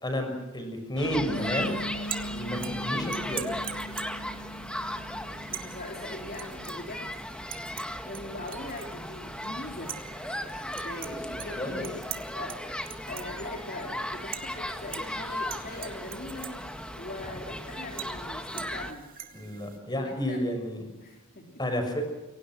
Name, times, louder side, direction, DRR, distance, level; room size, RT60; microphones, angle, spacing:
voice 1, 0.0-1.7 2.3-3.5 11.6-11.8 19.3-20.8 21.6-22.1, equal, 20° left, 6 dB, 6.3 m, -31 dB
sound 1, 1.0-18.9, left 1 dB, 5° left, 1.9 m, -37 dB
Piano, 1.3-7.0, equal, 70° left, 2.1 m, -40 dB
sound 2, 1.3-19.8, right 10 dB, 40° right, 2.4 m, -44 dB
voice 2, 5.5-7.1 8.1-10.0 10.7-19.1 19.9-20.4 21.0-21.6, left 1 dB, 45° left, 1 dB, 3.9 m, -41 dB
29.0 x 24.0 x 6.3 m, 1.1 s
head